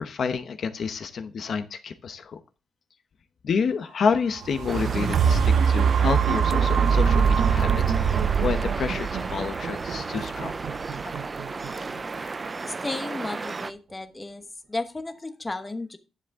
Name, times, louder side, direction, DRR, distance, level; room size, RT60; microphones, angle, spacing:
voice 1, 0.0-2.4 3.4-7.8 8.4-10.5, left 6 dB, 55° left, 8 dB, 0.9 m, -29 dB
sound 1, 4.3-12.4 12.9-13.0, right 7 dB, 70° right, 0.7 m, -23 dB
sound 2, 4.7-13.7, right 4 dB, 25° right, 0.5 m, -34 dB
voice 2, 12.6-14.4 14.7-16.0, left 2 dB, 15° left, 8 dB, 1.0 m, -33 dB
11.0 x 7.5 x 3.6 m, 0.32 s
wide cardioid pair, 145°, 0 cm